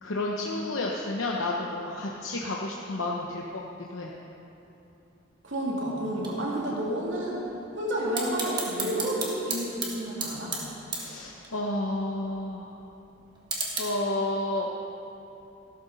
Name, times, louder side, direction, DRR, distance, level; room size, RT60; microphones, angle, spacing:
voice 1, 0.0-4.1 10.9-12.8 13.8-14.7, left 2 dB, 90° left, -2 dB, 0.9 m, -31 dB
voice 2, 5.4-7.5 7.7-10.6, right 1 dB, 70° right, -4 dB, 2.7 m, -30 dB
sound 1, 6.1-13.8, right 3 dB, 25° right, 1.7 m, -37 dB
15.0 x 12.5 x 4.1 m, 3.0 s
head